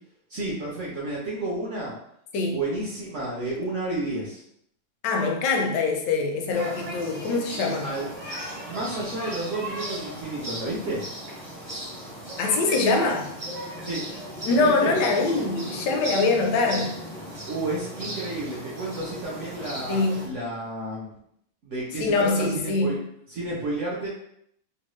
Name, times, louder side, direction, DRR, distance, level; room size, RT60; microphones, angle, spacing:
voice 1, 0.3-2.0 2.5-4.4 7.8-8.1 8.6-11.0 13.8-14.0 14.5-14.9 17.5-21.1 21.6-23.0 23.3-24.1, right 2 dB, 60° right, -5 dB, 0.8 m, -31 dB
voice 2, 5.0-7.9 12.4-13.3 14.4-17.0 19.9-20.3 22.0-23.0, left 3 dB, 80° left, 2 dB, 1.2 m, -24 dB
sound 1, 6.5-20.3, right 1 dB, 30° right, 0.7 m, -36 dB
3.1 x 2.3 x 3.0 m, 0.71 s
omnidirectional pair, 1.9 m